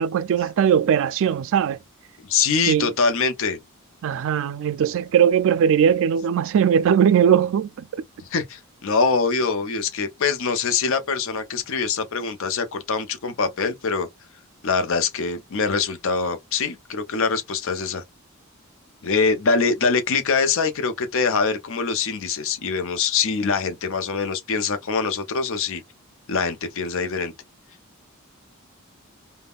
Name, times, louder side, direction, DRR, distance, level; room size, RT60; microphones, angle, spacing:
voice 1, 0.0-1.8 2.7-2.9 4.0-7.9, right 8 dB, 65° right, 0.3 m, -19 dB
voice 2, 2.2-3.6 8.2-14.1 14.6-18.0 19.0-25.8 26.3-27.3, left 5 dB, 65° left, 0.6 m, -24 dB
3.5 x 2.2 x 2.3 m
head